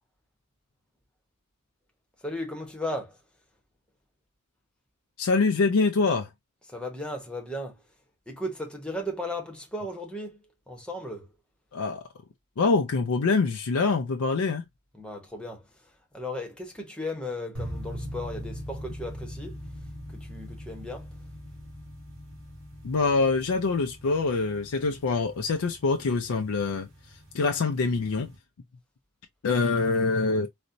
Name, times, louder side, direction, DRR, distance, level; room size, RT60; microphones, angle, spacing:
voice 1, 2.2-3.2 6.7-7.8 8.3-11.3 14.9-19.6 20.1-21.1, left 1 dB, 5° left, 0.8 m, -36 dB
voice 2, 5.2-6.3 11.7-12.1 12.6-14.6 22.8-26.9 27.3-28.3 29.4-30.5, left 4 dB, 80° left, 0.5 m, -25 dB
sound 1, 17.5-28.4, equal, 65° right, 1.6 m, -42 dB
4.1 x 2.1 x 2.5 m
head